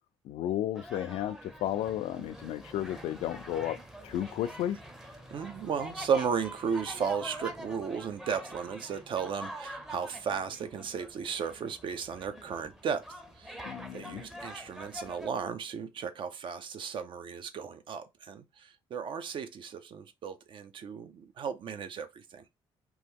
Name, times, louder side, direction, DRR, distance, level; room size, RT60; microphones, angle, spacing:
voice 1, 0.2-4.8 13.6-14.3, left 12 dB, 80° left, 0.4 m, -33 dB
sound 1, 0.7-15.3, equal, 5° right, 0.6 m, -45 dB
voice 2, 5.3-13.1 13.4-13.6 13.9-22.4, right 6 dB, 55° right, 0.4 m, -35 dB
2.9 x 2.2 x 3.5 m
cardioid pair, 100°, 10 cm